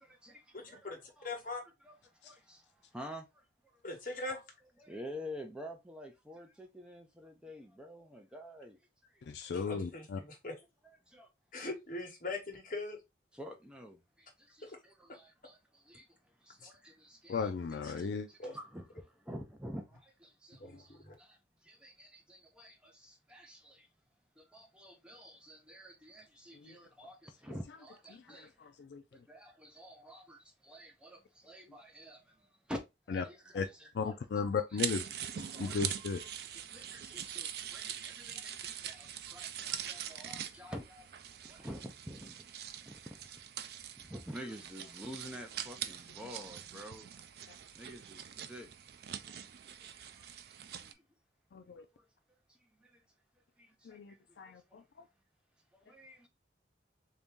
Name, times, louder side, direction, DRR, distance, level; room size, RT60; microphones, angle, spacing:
voice 1, 0.0-3.2 4.8-8.8 9.1-9.6 10.8-11.3 13.3-16.1 16.4-17.5 17.8-23.9 24.4-28.5 29.1-32.8 33.1-34.2 34.7-34.8 35.4-41.1 41.4-42.5 42.8-43.3 44.0-47.1 47.4-47.5 47.8-48.7 49.7-50.0 50.8-51.0 52.0-52.1 52.5-53.0 53.6-54.8 55.7-56.3, equal, 5° right, 0.5 m, -49 dB
voice 2, 0.5-1.0 1.2-1.6 3.8-4.4 9.5-10.5 11.5-13.0 16.6-16.7 17.8-17.9 18.4-18.5 20.6-21.1, left 2 dB, 45° left, 1.2 m, -41 dB
voice 3, 9.3-10.2 17.3-18.3 26.6-26.7 28.1-29.0 33.1-33.2 33.5-33.7 33.9-35.0 35.6-36.2 51.5-51.8 53.9-54.8, left 5 dB, 70° left, 0.4 m, -36 dB
sound 1, 34.8-50.9, right 10 dB, 60° right, 0.4 m, -43 dB
3.5 x 2.7 x 3.5 m
head